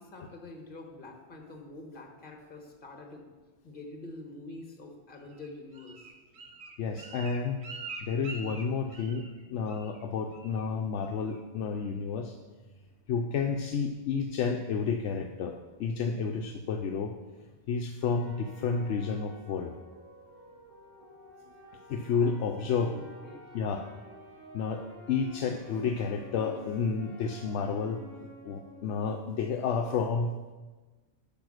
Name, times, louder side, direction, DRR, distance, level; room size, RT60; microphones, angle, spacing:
voice 1, 0.0-3.3 3.6-6.1 22.2-22.3 22.8-23.4, left 2 dB, 45° left, 3 dB, 1.5 m, -46 dB
Bird, 5.3-9.4 9.7-10.0 10.3-10.7 11.0-11.4 11.8-11.9, right 4 dB, 65° right, 1.2 m, -45 dB
voice 2, 6.8-7.6 8.0-12.4 13.1-17.1 17.7-19.8 21.9-22.9 23.5-23.8 24.5-30.4, left 5 dB, 75° left, 4 dB, 0.9 m, -31 dB
sound 1, 18.0-29.6, equal, 85° right, 3.3 m, -51 dB
9.1 x 5.4 x 6.3 m, 1.3 s
omnidirectional pair, 1.2 m